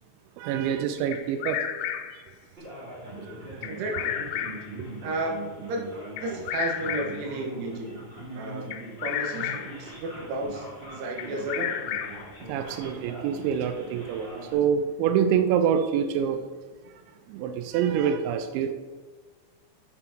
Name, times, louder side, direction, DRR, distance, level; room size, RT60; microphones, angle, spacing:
voice 1, 0.4-1.6 2.1-2.2 3.2-3.6 4.8-4.9 8.4-8.5 12.5-16.4 17.3-18.7, right 8 dB, 90° right, 2.6 m, -26 dB
Bird vocalization bird call bird song, 1.1-2.3 3.6-4.8 6.2-7.3 8.7-9.8 11.2-12.4, left 10 dB, 85° left, 3.3 m, -32 dB
Male speech man speaking, 2.6-14.5, right 2 dB, 25° right, 1.3 m, -41 dB
voice 2, 3.7-4.1 5.0-5.9 6.2-8.0 8.4-8.7 9.0-11.8, right 2 dB, 65° right, 3.0 m, -33 dB
8.0 x 7.7 x 4.5 m
omnidirectional pair, 5.9 m